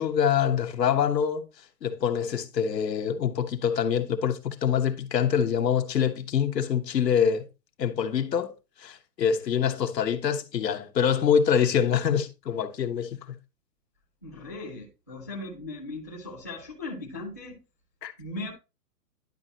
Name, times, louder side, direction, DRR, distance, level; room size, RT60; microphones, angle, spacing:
voice 1, 0.0-1.5 1.8-7.5 7.8-8.5 8.8-13.3 18.0-18.1, left 8 dB, 80° left, 1.2 m, -25 dB
voice 2, 14.2-17.6 18.2-18.5, left 2 dB, 10° left, 0.5 m, -38 dB
11.0 x 5.0 x 2.8 m
hypercardioid pair, 160°, 48 cm